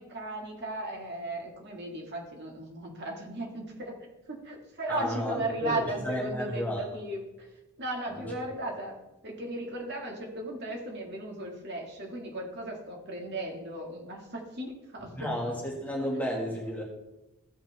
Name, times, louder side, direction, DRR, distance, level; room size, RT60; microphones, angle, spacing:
voice 1, 0.0-3.9 4.3-7.5 7.8-8.9 9.2-15.3, right 1 dB, 50° right, 0 dB, 1.9 m, -36 dB
voice 2, 4.9-6.8 8.1-8.3 15.1-16.8, equal, 5° left, -2 dB, 1.7 m, -32 dB
15.0 x 5.8 x 3.4 m, 0.97 s
head